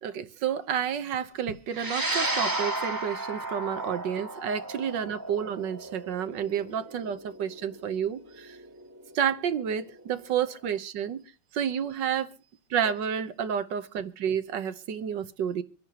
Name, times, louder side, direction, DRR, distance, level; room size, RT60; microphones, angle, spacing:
voice 1, 0.0-8.6 9.1-11.2 11.5-12.3 12.7-15.6, right 8 dB, 70° right, 1.6 m, -30 dB
sound 1, 1.7-10.3, right 2 dB, 10° right, 1.4 m, -34 dB
25.5 x 10.5 x 2.9 m
omnidirectional pair, 2.0 m